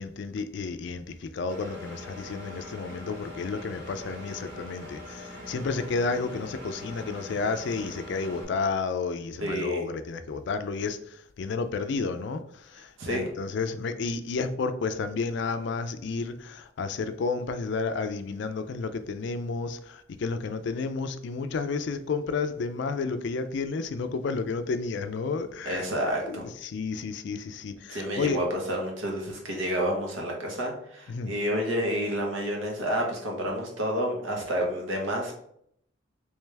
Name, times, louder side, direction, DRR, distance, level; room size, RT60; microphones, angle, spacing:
voice 1, 0.0-25.9 26.3-28.4 31.1-31.3, left 4 dB, 60° left, 0.4 m, -31 dB
Engine, 1.5-8.4, left 1 dB, 65° right, 1.5 m, -42 dB
voice 2, 9.4-9.8 13.0-13.3 25.6-26.5 27.9-35.3, equal, 85° right, 1.1 m, -29 dB
3.3 x 3.2 x 3.2 m
head